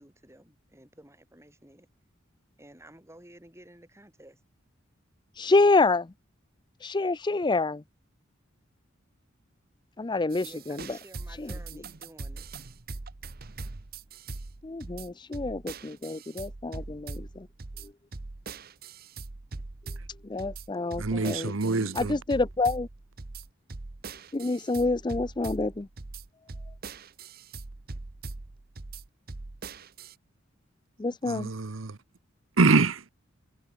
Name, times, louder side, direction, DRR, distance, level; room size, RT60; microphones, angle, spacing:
voice 1, 0.0-1.9 2.6-4.4 10.4-12.5, right 1 dB, 15° right, 7.0 m, -52 dB
voice 2, 5.4-6.1 6.8-7.8 10.0-10.8 11.4-11.5 14.6-17.5 20.2-21.5 22.0-22.9 24.3-25.9 31.0-31.5, left 3 dB, 25° left, 0.5 m, -27 dB
sound 1, 10.3-30.1, right 3 dB, 50° right, 0.9 m, -41 dB
voice 3, 21.0-22.2 31.2-32.0 32.6-33.1, right 3 dB, 80° right, 1.0 m, -25 dB
head